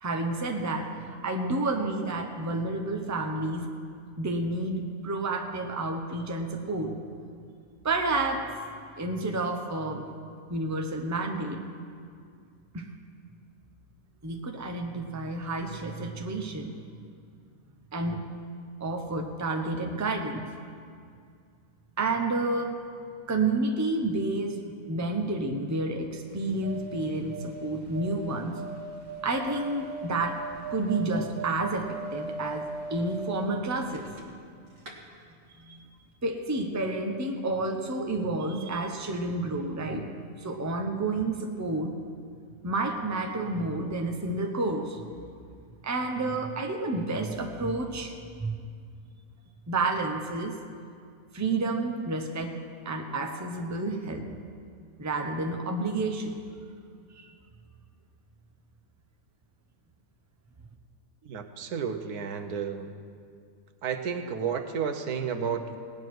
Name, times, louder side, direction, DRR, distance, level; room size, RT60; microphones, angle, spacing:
voice 1, 0.0-3.7 4.2-7.0 7.8-8.5 9.0-10.1 10.5-11.6 12.7-12.9 14.2-16.9 17.9-18.2 18.8-20.4 22.0-22.8 23.3-28.6 29.2-30.4 30.7-34.1 35.6-35.9 36.2-40.1 40.4-42.0 42.6-45.0 45.8-48.5 49.7-50.6 51.3-52.6 52.8-54.3 55.0-56.4 57.1-57.3, right 2 dB, 15° right, 3 dB, 0.8 m, -30 dB
sound 1, 26.3-34.5 34.8-34.9, right 3 dB, 55° right, 2.0 m, -39 dB
voice 2, 61.2-62.9 63.8-65.8, right 6 dB, 80° right, 7 dB, 1.4 m, -32 dB
17.5 x 9.7 x 6.2 m, 2.2 s
omnidirectional pair, 1.6 m